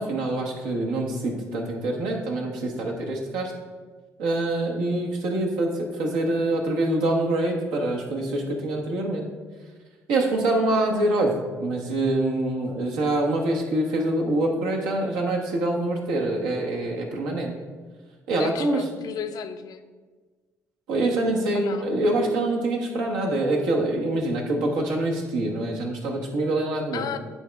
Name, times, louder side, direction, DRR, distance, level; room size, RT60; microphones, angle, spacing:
voice 1, 0.0-3.5 4.2-9.3 10.1-17.6 18.3-18.9 20.9-27.0, right 2 dB, 75° right, 0 dB, 1.2 m, -25 dB
voice 2, 18.4-19.8 21.5-21.9 26.9-27.2, left 8 dB, 60° left, 8 dB, 0.5 m, -33 dB
9.3 x 4.1 x 3.4 m, 1.4 s
hypercardioid pair, 50°, 7 cm